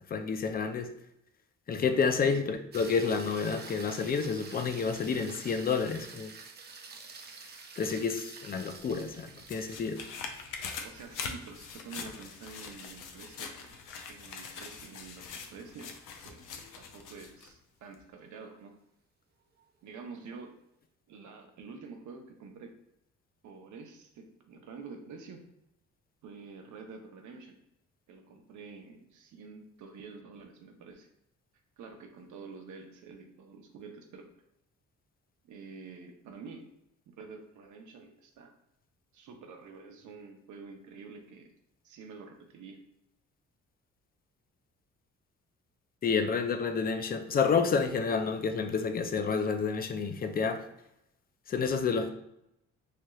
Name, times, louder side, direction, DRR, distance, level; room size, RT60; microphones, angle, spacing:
voice 1, 0.1-0.9 1.7-6.3 7.8-10.0 46.0-50.6 51.5-52.1, left 5 dB, 30° left, 0.4 m, -29 dB
sound 1, 2.7-15.1 19.6-19.7, right 4 dB, 35° right, 0.5 m, -49 dB
sound 2, 8.8-17.5 17.9-18.0, left 5 dB, 90° left, 0.5 m, -43 dB
voice 2, 10.8-13.8 14.1-15.9 16.2-18.7 19.8-20.6 21.1-22.7 23.4-25.4 26.2-27.6 28.1-31.1 31.8-34.3 35.4-36.7 37.1-38.5 39.1-41.5 41.8-42.8, right 4 dB, 75° right, 0.7 m, -48 dB
3.3 x 2.8 x 2.3 m
cardioid pair, 90°, 30 cm